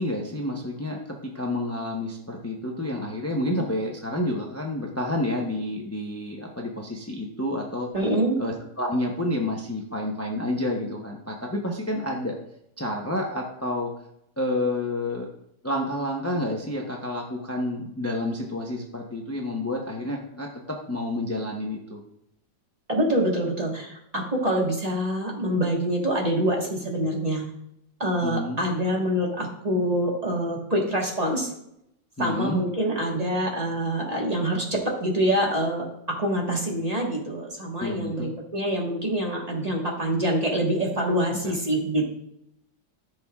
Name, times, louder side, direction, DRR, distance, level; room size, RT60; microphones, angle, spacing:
voice 1, 0.0-7.9 8.4-12.4 12.8-13.9 14.4-15.3 15.6-22.0 28.2-28.6 32.2-32.6 37.8-38.3 41.4-41.5, left 1 dB, 20° left, 0 dB, 0.4 m, -29 dB
voice 2, 7.9-8.4 22.9-27.4 28.0-31.5 32.2-42.1, right 1 dB, 25° right, -1 dB, 1.4 m, -25 dB
13.5 x 6.2 x 2.4 m, 0.79 s
omnidirectional pair, 1.9 m